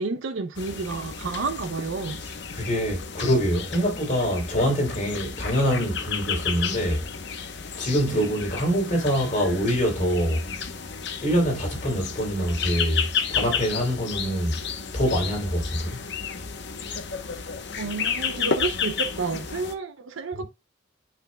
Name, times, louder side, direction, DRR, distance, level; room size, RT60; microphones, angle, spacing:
voice 1, 0.0-2.2 8.1-8.3 17.8-20.4, right 4 dB, 80° right, 0.6 m, -30 dB
sound 1, 0.5-19.7, left 6 dB, 60° left, 0.9 m, -32 dB
voice 2, 2.2-7.1 7.8-10.4 11.2-14.6 14.9-16.0 20.3-20.4, equal, 40° left, 3.3 m, -25 dB
8.1 x 5.7 x 2.2 m
head